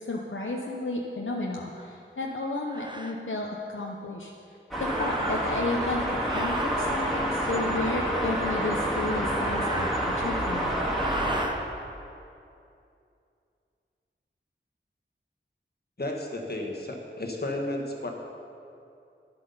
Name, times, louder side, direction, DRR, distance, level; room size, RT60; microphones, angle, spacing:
voice 1, 0.1-4.3 4.8-9.9 10.2-10.7, left 2 dB, 70° left, -1 dB, 0.8 m, -32 dB
sound 1, 1.7-1.9 2.6-3.2 4.8-5.7 6.2-6.8 9.0-10.4 10.9-11.6, right 1 dB, 20° right, 0.8 m, -37 dB
sound 2, 4.7-11.5, equal, ahead, 2.3 m, -28 dB
voice 2, 16.0-18.1, left 1 dB, 50° left, 1 dB, 1.4 m, -33 dB
11.0 x 7.8 x 5.5 m, 2.5 s
wide cardioid pair, 50°, 21 cm